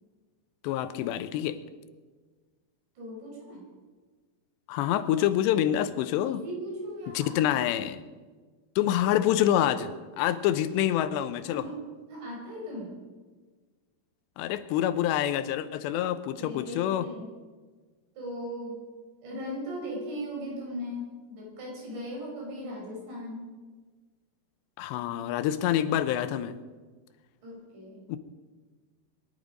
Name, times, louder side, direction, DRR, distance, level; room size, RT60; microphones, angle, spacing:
voice 1, 0.6-1.6 4.7-6.4 7.1-8.0 8.8-9.9 10.2-11.6 14.4-17.0 24.8-26.6 28.1-28.2, left 11 dB, 85° left, 12 dB, 3.0 m, -26 dB
voice 2, 3.0-3.6 6.2-7.6 11.5-11.8 12.1-13.0 16.2-17.3 18.2-18.8 19.2-23.5 27.4-28.0, equal, 85° right, -2 dB, 7.6 m, -38 dB
24.5 x 11.0 x 5.3 m, 1.4 s
omnidirectional pair, 4.9 m